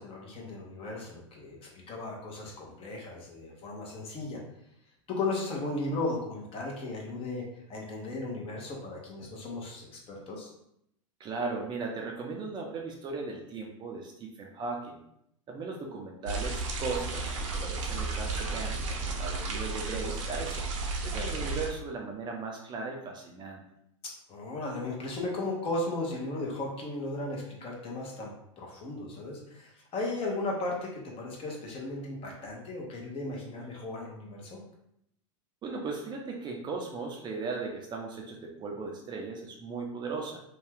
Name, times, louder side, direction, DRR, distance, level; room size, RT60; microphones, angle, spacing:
voice 1, 0.0-1.6 1.9-4.4 5.1-10.5 24.3-34.6, left 2 dB, 35° left, -1 dB, 0.9 m, -36 dB
voice 2, 11.2-15.0 15.5-20.7 21.0-23.6 35.6-40.4, right 4 dB, 25° right, 0 dB, 0.5 m, -37 dB
sound 1, 16.3-21.7, right 3 dB, 70° right, 0.7 m, -33 dB
2.7 x 2.3 x 3.4 m, 0.76 s
hypercardioid pair, 110°, 17 cm